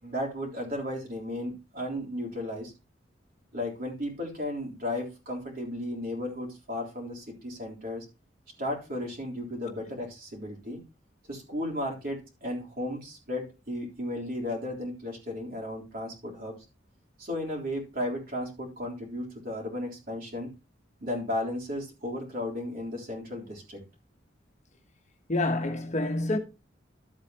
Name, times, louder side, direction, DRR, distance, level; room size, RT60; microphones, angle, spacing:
voice 1, 0.0-2.7 3.5-8.1 8.6-10.8 11.3-16.6 17.2-20.5 21.0-23.8, left 1 dB, 50° right, 3.6 m, -34 dB
voice 2, 25.3-26.4, left 2 dB, 40° left, 1.2 m, -27 dB
12.0 x 8.1 x 2.9 m
head